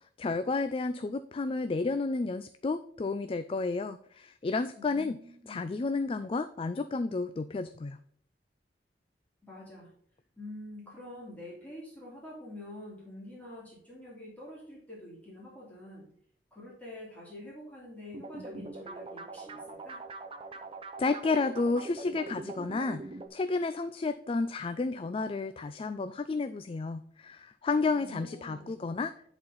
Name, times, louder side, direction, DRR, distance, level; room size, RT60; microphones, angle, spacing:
voice 1, 0.2-5.2 5.5-8.0 21.0-23.1 23.3-29.1, left 3 dB, 30° left, 11 dB, 0.3 m, -31 dB
voice 2, 4.8-5.7 9.4-9.9 10.4-16.1 16.5-20.0 27.9-28.9, left 1 dB, 10° left, -6 dB, 3.0 m, -46 dB
sound 1, 18.1-23.3, right 3 dB, 30° right, 0.7 m, -43 dB
10.5 x 4.3 x 3.9 m, 0.63 s
head